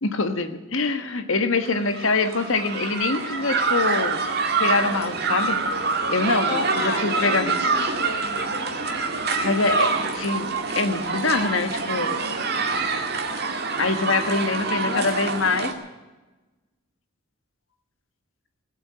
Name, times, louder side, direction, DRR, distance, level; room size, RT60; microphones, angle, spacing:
voice 1, 0.0-4.3 4.6-5.6 6.1-7.5 9.4-12.2 13.8-15.7, left 3 dB, 70° left, 9 dB, 1.4 m, -24 dB
sound 1, 1.7-15.7, right 4 dB, 50° right, 1.8 m, -26 dB
voice 2, 6.5-8.6 14.8-15.3, left 3 dB, 50° left, 6 dB, 1.8 m, -32 dB
17.5 x 8.6 x 9.4 m, 1.2 s
head